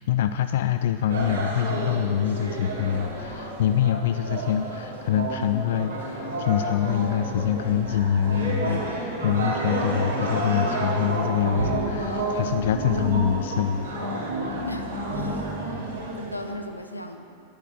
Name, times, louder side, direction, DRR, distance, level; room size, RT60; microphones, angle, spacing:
voice 1, 0.0-14.1, left 10 dB, 55° left, 9 dB, 0.4 m, -25 dB
sound 1, 1.1-16.5, right 2 dB, 75° right, 3.2 m, -30 dB
voice 2, 14.7-15.6 16.2-17.2, left 1 dB, 90° left, 5 dB, 1.1 m, -38 dB
12.0 x 10.5 x 8.3 m, 2.4 s
figure-of-eight pair, 90°, 0 cm